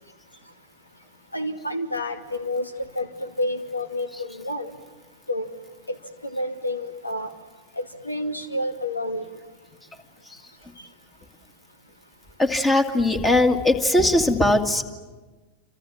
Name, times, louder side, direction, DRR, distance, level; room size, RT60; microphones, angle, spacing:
voice 1, 1.3-4.7 5.3-5.5 5.9-6.0 6.2-7.3 7.8-9.3, left 1 dB, 80° left, 8 dB, 2.3 m, -29 dB
voice 2, 12.4-14.8, left 2 dB, 15° left, 6 dB, 2.2 m, -20 dB
29.0 x 26.5 x 7.3 m, 1.3 s
figure-of-eight pair, 90°, 0 cm